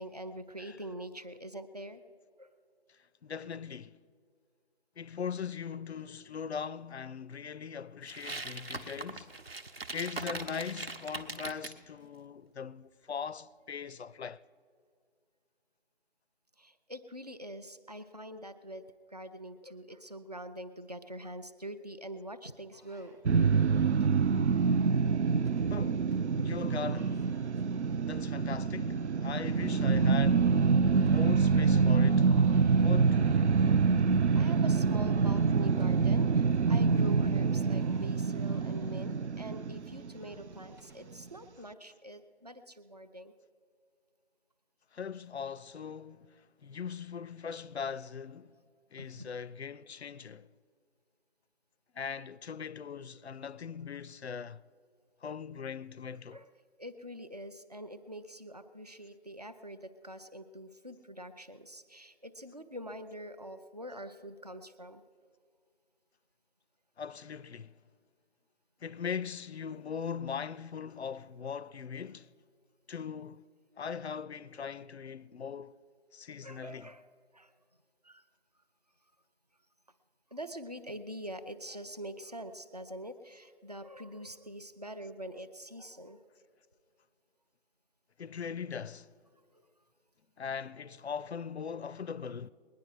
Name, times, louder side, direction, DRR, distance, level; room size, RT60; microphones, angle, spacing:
voice 1, 0.0-2.0 2.4-2.5 16.6-23.2 34.3-43.3 49.0-49.3 56.1-56.5 56.8-65.0 76.4-77.0 77.3-77.5 78.0-78.2 80.3-86.2 89.5-89.6, right 1 dB, 40° right, 0.5 m, -44 dB
voice 2, 2.9-4.0 5.0-9.3 9.9-14.4 25.7-27.2 28.1-30.5 30.9-32.3 32.8-34.0 44.9-48.6 48.9-50.5 51.9-54.6 55.2-56.4 67.0-67.8 68.8-72.3 72.9-73.5 73.8-75.8 76.1-76.9 88.2-89.1 90.4-92.5, left 6 dB, 75° left, 0.5 m, -40 dB
sound 1, 8.1-11.8, right 3 dB, 65° right, 1.1 m, -41 dB
sound 2, 22.7-41.2, equal, 15° right, 1.2 m, -59 dB
sound 3, 23.2-40.4, right 5 dB, 90° right, 0.5 m, -26 dB
20.5 x 10.5 x 4.7 m
figure-of-eight pair, 175°, 33 cm